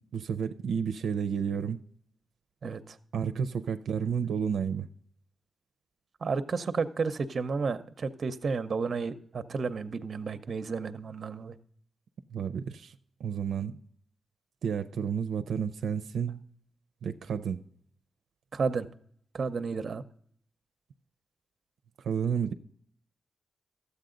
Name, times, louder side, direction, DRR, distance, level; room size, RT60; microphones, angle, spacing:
voice 1, 0.1-1.8 3.1-4.9 12.3-12.9 13.2-13.7 14.6-16.4 17.0-17.6 22.0-22.5, right 7 dB, 90° right, 0.5 m, -31 dB
voice 2, 2.6-3.0 6.2-11.5 18.5-18.9 19.3-20.0, right 4 dB, 50° right, 0.7 m, -32 dB
13.0 x 8.2 x 3.8 m
cardioid pair, 95°, 0 cm